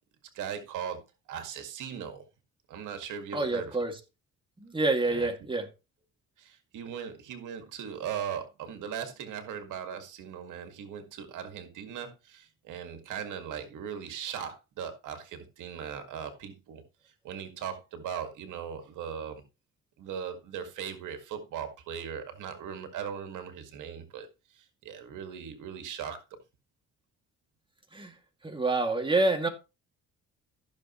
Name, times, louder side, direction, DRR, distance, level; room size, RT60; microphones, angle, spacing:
voice 1, 0.3-1.0 1.3-2.2 2.7-3.8 5.1-5.3 6.4-19.4 20.0-24.3 24.5-26.2, right 8 dB, 85° right, 7 dB, 2.0 m, -39 dB
voice 2, 3.3-4.0 4.6-5.7 27.9-28.1 28.4-29.5, right 2 dB, 15° right, 3 dB, 2.2 m, -27 dB
15.0 x 6.6 x 3.0 m, 0.28 s
cardioid pair, 90°, 30 cm